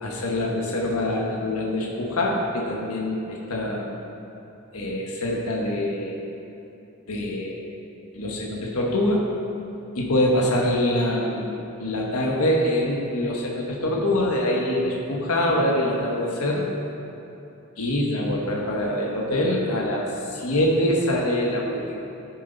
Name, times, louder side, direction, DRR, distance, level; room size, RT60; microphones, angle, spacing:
voice 1, 0.0-3.9 4.7-6.2 7.1-7.6 8.1-9.2 9.9-11.5 11.8-16.7 17.8-22.0, left 1 dB, 80° left, -2 dB, 1.3 m, -24 dB
13.5 x 7.5 x 4.0 m, 2.9 s
head